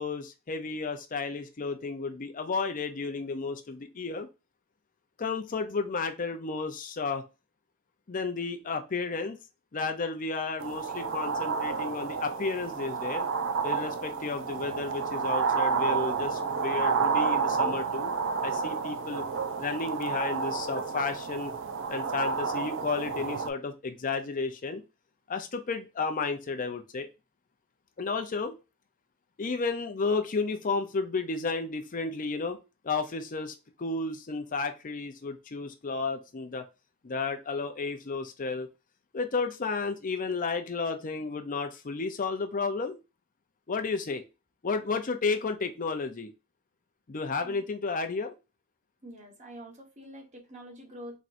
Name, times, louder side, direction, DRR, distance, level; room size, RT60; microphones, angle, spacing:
voice 1, 0.0-4.3 5.2-7.2 8.1-9.4 9.7-13.3 13.6-18.1 18.4-19.2 19.6-21.5 21.9-24.8 25.3-27.1 28.0-28.5 29.4-32.6 32.8-36.6 37.0-38.7 39.1-43.0 43.7-44.2 44.6-46.3 47.1-48.3, left 4 dB, 40° left, 0.6 m, -32 dB
sound 1, 10.6-23.5, right 5 dB, 60° right, 0.5 m, -30 dB
voice 2, 49.0-51.2, equal, 35° right, 1.3 m, -46 dB
4.2 x 3.7 x 2.6 m
head